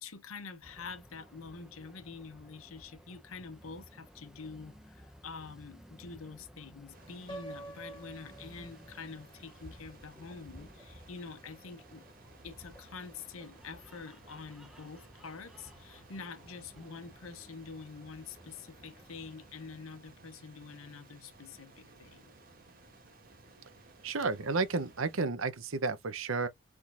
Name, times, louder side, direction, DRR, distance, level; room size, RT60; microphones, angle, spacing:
voice 1, 0.0-12.1 12.4-22.3, left 5 dB, 85° left, 0.8 m, -46 dB
sound 1, 0.6-20.1, equal, ahead, 0.8 m, -56 dB
sound 2, 6.9-25.2, right 3 dB, 45° right, 1.6 m, -58 dB
Piano, 7.3-9.3, right 2 dB, 20° left, 1.0 m, -47 dB
voice 2, 24.0-26.5, right 4 dB, 75° right, 0.8 m, -32 dB
4.5 x 3.7 x 2.5 m
head